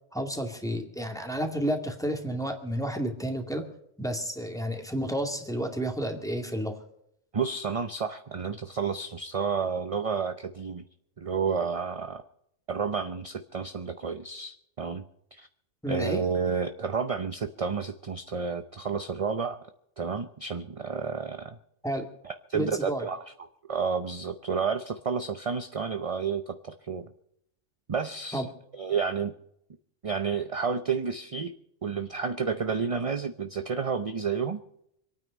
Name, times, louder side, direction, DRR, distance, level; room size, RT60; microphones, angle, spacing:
voice 1, 0.1-3.7 4.0-6.8 15.8-16.2 21.8-22.1 22.5-23.1 28.3-28.5, equal, 5° left, 3 dB, 2.2 m, -31 dB
voice 2, 7.3-10.8 11.2-12.2 12.7-15.0 15.3-15.5 15.9-19.6 20.0-21.6 22.2-23.2 23.7-27.1 27.9-28.4 28.7-29.3 30.0-31.5 31.8-34.6, right 5 dB, 35° right, 9 dB, 0.7 m, -30 dB
26.0 x 9.4 x 5.4 m, 0.76 s
omnidirectional pair, 1.3 m